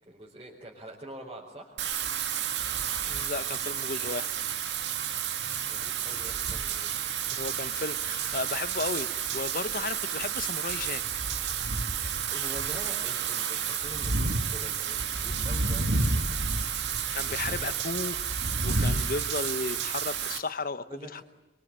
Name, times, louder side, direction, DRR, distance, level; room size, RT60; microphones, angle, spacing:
voice 1, 0.0-1.8 5.5-7.4 11.7-16.3 16.9-17.7 20.9-21.2, right 1 dB, 30° right, -5 dB, 4.4 m, -46 dB
Wind / Rain, 1.8-20.4, right 6 dB, 85° right, 2.4 m, -30 dB
voice 2, 3.1-4.3 7.4-11.0 17.1-18.2 18.6-21.2, left 3 dB, 55° left, 14 dB, 1.0 m, -34 dB
25.5 x 24.0 x 8.9 m, 1.0 s
head